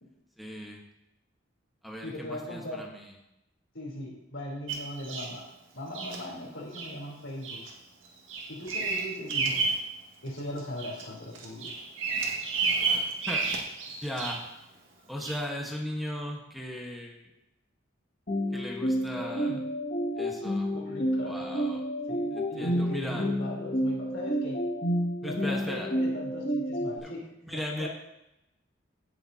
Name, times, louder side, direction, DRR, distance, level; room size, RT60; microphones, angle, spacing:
voice 1, 0.4-0.8 1.8-3.1 13.3-13.5 14.0-14.4 15.1-17.3 18.5-19.6 20.2-20.7 21.2-21.8 22.3-23.3 25.2-25.9 27.0-27.1 27.4-27.9, left 1 dB, ahead, -1 dB, 1.3 m, -37 dB
voice 2, 2.0-2.9 3.7-5.4 5.7-7.6 8.5-9.6 10.2-11.7 19.1-19.7 20.7-21.4 22.1-24.6 25.2-27.9, left 1 dB, 85° left, -3 dB, 3.6 m, -39 dB
Bird vocalization bird call bird song, 4.7-5.3 5.9-6.2 6.7-6.9 7.4-7.7 8.0-9.8 10.3-11.0 11.3-14.5 15.2-15.4, right 4 dB, 80° right, 1.7 m, -31 dB
sound 1, 18.3-27.0, equal, 45° left, 2.0 m, -30 dB
17.0 x 6.8 x 2.8 m, 0.89 s
head